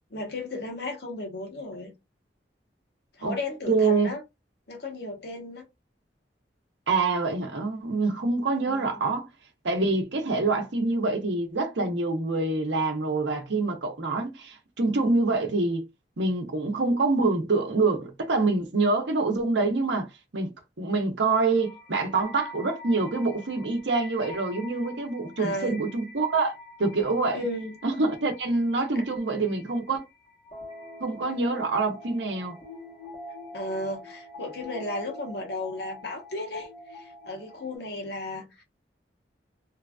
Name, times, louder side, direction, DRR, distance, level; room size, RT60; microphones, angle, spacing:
voice 1, 0.1-1.9 3.2-4.2 4.7-5.7 8.6-9.0 25.4-25.8 27.3-27.7 28.9-29.0 33.5-38.6, left 2 dB, 65° left, 1.0 m, -34 dB
voice 2, 3.7-4.1 6.9-9.3 9.6-15.9 16.2-20.1 20.3-20.5 20.8-27.4 27.8-30.1 31.0-32.6, right 3 dB, 85° right, 0.9 m, -26 dB
sound 1, 21.5-37.8, left 1 dB, 35° left, 1.2 m, -46 dB
3.1 x 2.4 x 2.4 m
head